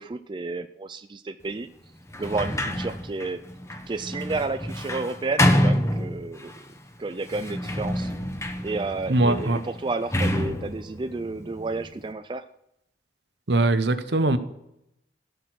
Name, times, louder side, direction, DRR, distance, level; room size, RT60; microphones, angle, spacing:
voice 1, 0.0-1.7 2.2-3.4 3.9-6.5 7.0-8.1 8.6-12.5, right 3 dB, 25° right, 10 dB, 0.4 m, -31 dB
Sliding door, 2.1-6.6 7.2-12.1, left 1 dB, 15° left, 1.0 m, -27 dB
voice 2, 9.1-9.6 13.5-14.4, right 2 dB, 65° right, 11 dB, 1.0 m, -21 dB
16.5 x 6.6 x 6.3 m, 0.83 s
head